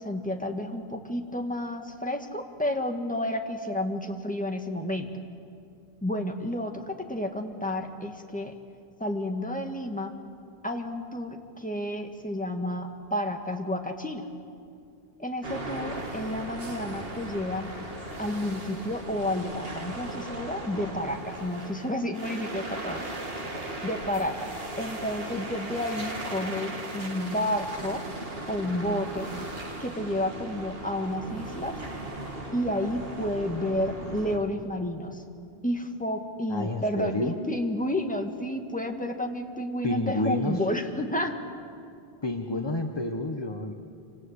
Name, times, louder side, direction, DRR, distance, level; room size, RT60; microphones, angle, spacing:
voice 1, 0.0-5.1 6.0-8.5 9.0-10.1 10.6-14.2 15.2-17.7 18.2-23.0 23.8-24.5 24.8-28.0 28.5-29.3 29.8-31.8 32.5-35.2 35.6-41.4, left 1 dB, 5° left, 3 dB, 1.9 m, -31 dB
sound 1, 15.4-34.4, right 2 dB, 65° right, 2.6 m, -37 dB
voice 2, 36.5-37.3 39.8-40.6 42.2-43.7, left 2 dB, 25° left, 5 dB, 1.2 m, -29 dB
28.0 x 26.0 x 8.2 m, 2.4 s
omnidirectional pair, 1.1 m